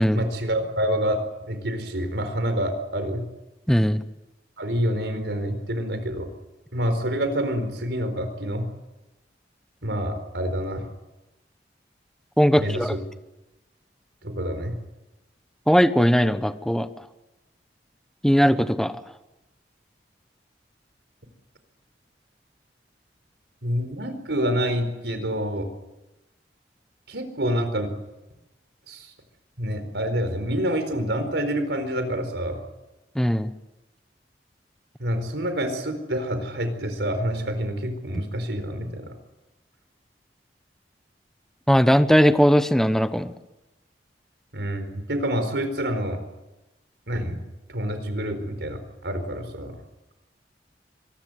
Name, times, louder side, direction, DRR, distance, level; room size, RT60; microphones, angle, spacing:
voice 1, 0.1-3.2 4.6-6.3 6.7-8.7 9.8-10.9 12.5-13.0 14.2-14.7 23.6-25.7 27.1-27.9 28.9-29.1 29.6-32.6 35.0-39.1 44.5-46.2 47.1-47.4 47.7-49.8, equal, 80° right, 9 dB, 4.4 m, -27 dB
voice 2, 3.7-4.0 12.4-12.9 15.7-16.9 18.2-19.0 33.1-33.5 41.7-43.3, equal, 5° left, 11 dB, 1.0 m, -19 dB
25.0 x 20.0 x 8.1 m, 1.0 s
head